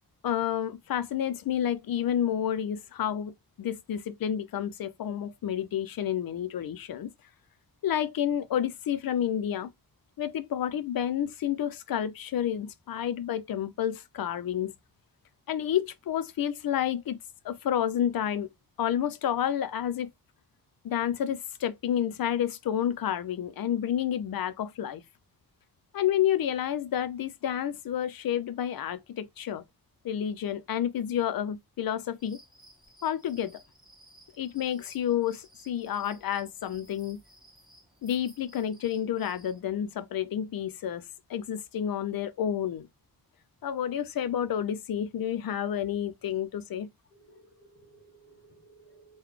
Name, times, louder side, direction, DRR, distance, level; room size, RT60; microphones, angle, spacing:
voice 1, 0.2-7.1 7.8-9.7 10.2-14.7 15.5-17.2 17.4-18.5 18.8-20.1 20.8-25.0 25.9-29.6 30.0-32.4 33.0-33.6 34.4-37.2 38.0-42.9 43.6-46.9, left 10 dB, 70° left, 0.5 m, -30 dB
sound 1, 32.2-39.6, right 1 dB, ahead, 1.1 m, -57 dB
voice 2, 47.1-49.2, right 2 dB, 35° left, 1.0 m, -57 dB
3.8 x 2.2 x 3.1 m
wide cardioid pair, 130°, 36 cm